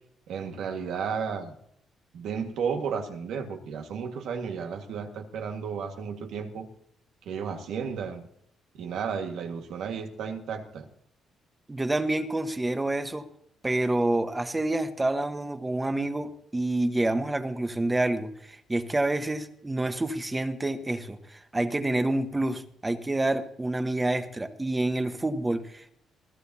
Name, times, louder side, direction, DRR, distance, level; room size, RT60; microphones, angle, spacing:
voice 1, 0.3-1.6 2.1-6.7 7.3-8.3 8.7-10.9, right 6 dB, 75° right, 4 dB, 1.7 m, -33 dB
voice 2, 11.7-13.3 13.6-25.9, right 2 dB, 15° right, 8 dB, 1.2 m, -28 dB
21.0 x 14.0 x 2.8 m, 0.70 s
cardioid pair, 90°, 0 cm